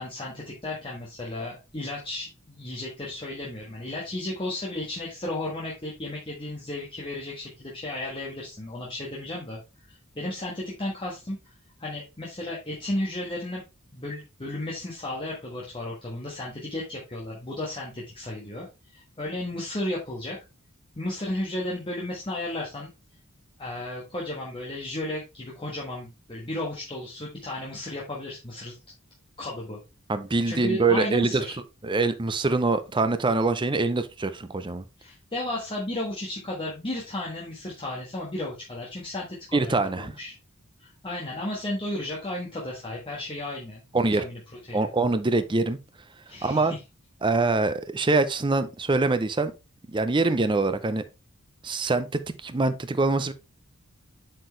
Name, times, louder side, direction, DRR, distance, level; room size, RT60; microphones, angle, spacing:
voice 1, 0.0-9.6 9.9-11.4 11.8-13.6 13.9-20.4 21.0-22.9 23.6-28.7 29.4-29.8 30.4-31.6 35.0-40.3 40.8-43.9 44.2-44.4 44.7-44.9 46.3-46.8, left 1 dB, 25° left, 1.4 m, -34 dB
voice 2, 30.1-31.4 31.8-34.8 39.5-40.1 43.9-44.2 44.7-45.8 46.4-46.7 47.2-49.5 49.9-51.0 51.6-53.3, right 3 dB, 20° right, 0.5 m, -24 dB
7.7 x 4.5 x 3.1 m
head